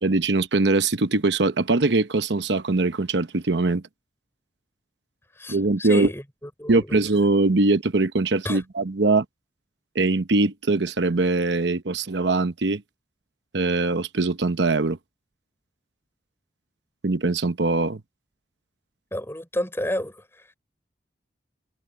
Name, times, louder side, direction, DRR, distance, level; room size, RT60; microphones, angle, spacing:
voice 1, 0.0-3.8 5.5-6.1 6.7-9.2 9.9-12.8 13.5-15.0 17.0-18.0, right 3 dB, 75° right, 0.9 m, -22 dB
voice 2, 5.4-6.2 6.6-7.0 8.4-8.6 19.1-20.5, left 1 dB, 15° left, 5.5 m, -31 dB
head